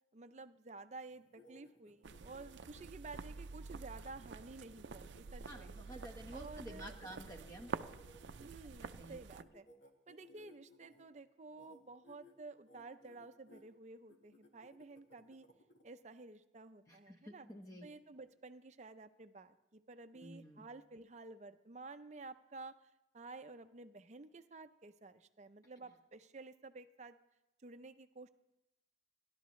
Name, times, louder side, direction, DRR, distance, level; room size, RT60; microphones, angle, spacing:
voice 1, 0.1-5.7 6.3-7.1 8.4-9.7 10.1-15.4 15.8-17.5 17.8-22.7 23.1-27.2 27.6-28.3, right 3 dB, 40° right, 10 dB, 0.5 m, -52 dB
sound 1, 1.1-8.9 9.4-11.0 11.5-11.8 12.0-12.3 12.7-13.6 14.1-15.8, left 1 dB, 90° left, 1.7 m, -63 dB
sound 2, 2.0-9.4, right 4 dB, 85° right, 0.5 m, -48 dB
voice 2, 5.5-7.7 8.8-9.1 17.1-17.9 20.1-20.6, equal, 20° left, 3 dB, 1.3 m, -51 dB
29.5 x 11.5 x 3.2 m, 0.93 s
head